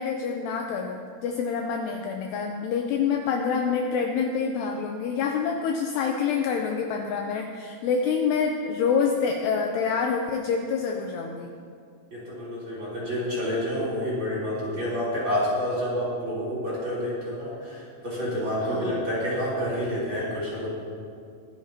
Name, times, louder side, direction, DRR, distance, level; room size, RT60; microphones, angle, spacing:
voice 1, 0.0-11.5 18.6-19.0, left 6 dB, 85° left, 3 dB, 2.4 m, -27 dB
voice 2, 12.1-20.7, equal, 25° right, -8 dB, 3.6 m, -28 dB
23.0 x 9.7 x 2.9 m, 2.3 s
omnidirectional pair, 5.5 m